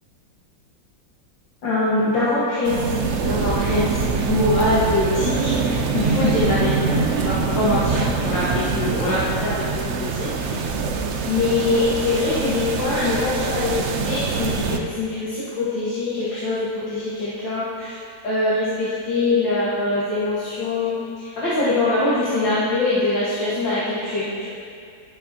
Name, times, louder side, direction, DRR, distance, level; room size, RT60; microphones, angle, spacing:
voice 1, 1.6-10.6 11.2-24.5, left 2 dB, 80° left, -10 dB, 2.4 m, -23 dB
sound 1, 2.6-14.8, right 4 dB, 70° right, 0.6 m, -24 dB
19.5 x 7.3 x 2.9 m, 2.3 s
omnidirectional pair, 2.0 m